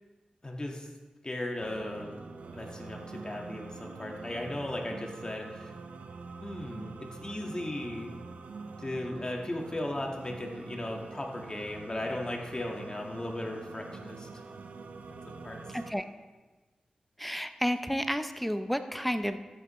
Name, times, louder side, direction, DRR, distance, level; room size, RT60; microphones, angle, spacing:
voice 1, 0.4-0.9 1.2-2.1 2.5-5.7 6.4-8.1 8.8-14.3 15.1-15.6, left 1 dB, 30° left, 1 dB, 1.6 m, -37 dB
sound 1, 1.6-15.9, right 4 dB, 85° right, 0.6 m, -45 dB
voice 2, 15.7-16.0 17.2-19.4, equal, 5° left, 9 dB, 0.6 m, -31 dB
13.5 x 8.4 x 3.2 m, 1.2 s
cardioid pair, 45°, 3 cm